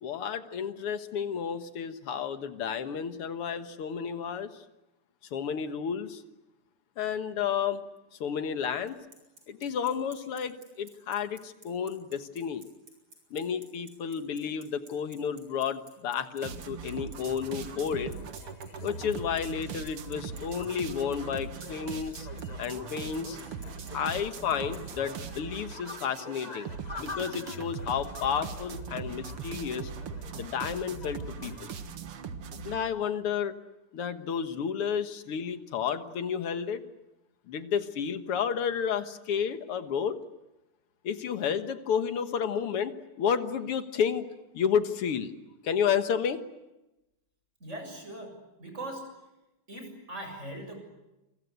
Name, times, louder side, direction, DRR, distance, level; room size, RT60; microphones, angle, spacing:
voice 1, 0.0-4.6 5.3-6.2 7.0-7.8 8.2-9.0 9.5-12.6 13.3-18.1 18.8-22.3 22.6-23.4 23.9-26.7 27.0-29.9 30.4-31.7 32.6-33.5 33.9-36.8 37.5-40.2 41.0-42.9 43.2-44.3 44.5-45.3 45.6-46.4, left 7 dB, 90° left, 9 dB, 2.4 m, -31 dB
Bicycle, 8.9-24.8, right 2 dB, 65° right, 7.8 m, -52 dB
sound 1, 16.4-32.8, right 6 dB, 85° right, 2.4 m, -40 dB
sound 2, 17.5-31.7, left 3 dB, 25° left, 1.1 m, -48 dB
voice 2, 47.6-48.3 48.6-49.0 49.7-50.8, right 1 dB, 30° right, 4 dB, 7.7 m, -40 dB
28.5 x 23.5 x 8.2 m, 0.96 s
omnidirectional pair, 2.4 m